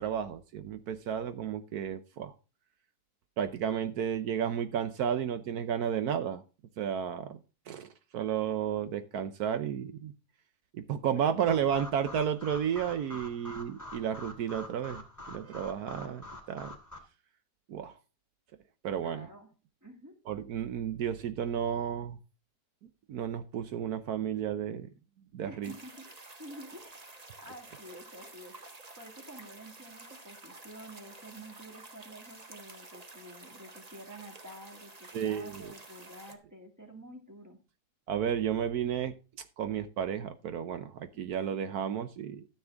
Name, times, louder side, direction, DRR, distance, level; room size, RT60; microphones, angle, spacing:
voice 1, 0.0-2.3 3.4-6.4 6.8-7.4 7.7-10.1 10.7-15.0 15.3-16.7 17.7-17.9 18.8-19.3 20.3-22.2 23.1-24.9 25.3-25.7 35.1-35.6 38.1-39.1 39.6-42.5, right 8 dB, 75° right, 1.3 m, -32 dB
sound 1, 11.5-17.0, left 1 dB, 10° left, 2.3 m, -46 dB
voice 2, 19.0-19.5 19.8-20.2 25.5-26.1 26.4-27.0 27.4-28.5 29.0-37.6 41.1-41.3, right 1 dB, 10° right, 2.1 m, -49 dB
sound 2, 25.6-36.4, right 2 dB, 25° right, 1.2 m, -51 dB
13.0 x 7.1 x 3.4 m
omnidirectional pair, 1.7 m